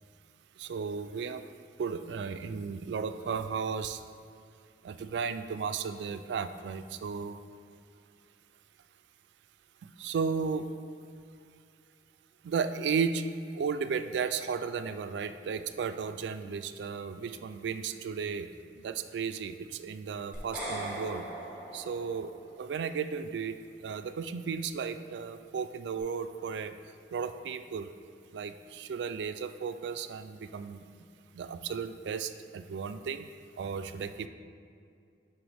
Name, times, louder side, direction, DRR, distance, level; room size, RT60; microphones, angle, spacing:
voice 1, 0.6-1.4 1.8-4.0 4.8-7.4 9.8-10.7 12.4-13.2 13.5-21.3 21.7-22.3 22.6-26.8 27.1-27.9 28.3-30.8 31.3-33.3 33.6-34.3, right 6 dB, 70° right, 10 dB, 0.3 m, -34 dB
sound 1, 20.3-22.6, right 1 dB, 10° right, 1.6 m, -39 dB
10.0 x 3.8 x 3.4 m, 2.3 s
head